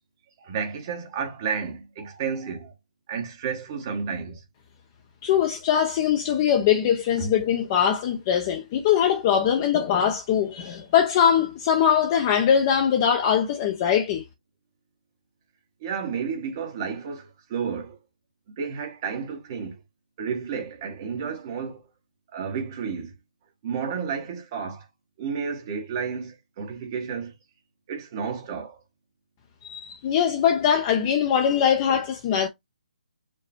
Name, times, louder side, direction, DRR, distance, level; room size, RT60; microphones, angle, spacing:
voice 1, 0.4-2.7 3.1-4.4 7.2-7.3 15.8-18.0 18.6-19.8 20.2-21.8 22.3-23.1 23.6-24.9 25.2-27.3 27.9-28.8, right 6 dB, 25° right, 1.3 m, -31 dB
voice 2, 5.2-14.2 29.6-32.5, left 8 dB, 20° left, 0.4 m, -22 dB
4.8 x 2.1 x 4.3 m
hypercardioid pair, 170°, 5 cm